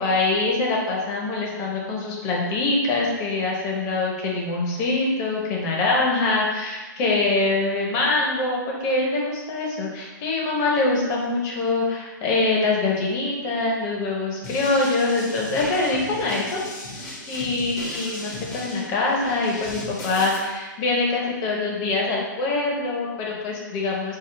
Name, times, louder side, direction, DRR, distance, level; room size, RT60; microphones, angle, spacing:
voice 1, 0.0-16.6 17.3-24.2, left 3 dB, 35° left, -2 dB, 0.8 m, -24 dB
sound 1, 14.4-20.4, left 1 dB, 55° left, 1.1 m, -36 dB
3.6 x 2.0 x 3.2 m, 1.3 s
hypercardioid pair, 125°, 11 cm